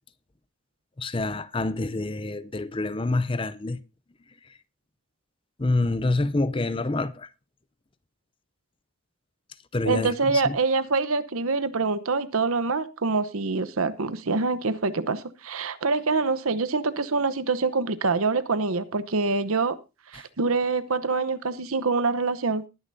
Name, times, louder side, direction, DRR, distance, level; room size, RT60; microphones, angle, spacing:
voice 1, 1.0-3.8 5.6-7.3 9.7-10.6 20.1-20.2, left 2 dB, 25° left, 0.5 m, -27 dB
voice 2, 9.8-19.8 20.1-22.6, right 4 dB, 80° right, 0.9 m, -25 dB
20.0 x 9.8 x 2.7 m
head